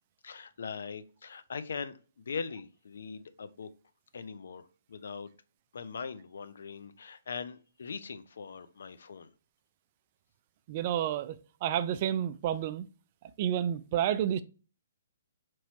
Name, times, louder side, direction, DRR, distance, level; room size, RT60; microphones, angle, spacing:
voice 1, 0.2-3.7 4.1-5.3 5.7-9.3, left 5 dB, 70° left, 0.5 m, -41 dB
voice 2, 10.7-11.4 11.6-12.9 13.4-14.4, right 10 dB, 35° right, 0.3 m, -30 dB
4.5 x 3.0 x 2.8 m
hypercardioid pair, 160°, 0 cm